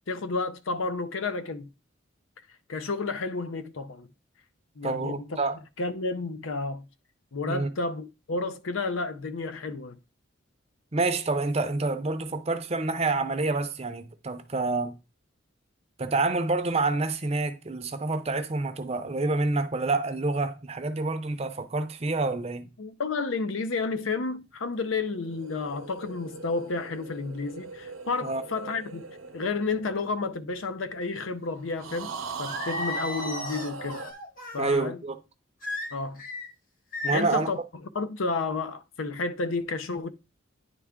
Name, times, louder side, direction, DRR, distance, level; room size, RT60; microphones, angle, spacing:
voice 1, 0.1-1.7 2.7-4.1 4.8-5.4 5.8-6.9 7.3-10.0 22.8-29.0 29.3-32.1 32.4-34.0 34.5-35.0 35.9-36.2 37.1-37.6 37.9-40.1, left 3 dB, 75° left, 0.6 m, -31 dB
voice 2, 4.8-5.6 7.5-7.7 10.9-14.9 16.0-22.7 28.2-28.4 34.6-35.2 37.0-37.5, right 3 dB, 30° right, 0.6 m, -28 dB
sound 1, 25.1-30.7 31.8-34.1, right 4 dB, 80° right, 0.8 m, -39 dB
Singing, 32.5-34.6 35.6-36.5 36.9-37.4, left 2 dB, 45° left, 1.4 m, -35 dB
9.9 x 3.4 x 3.6 m
head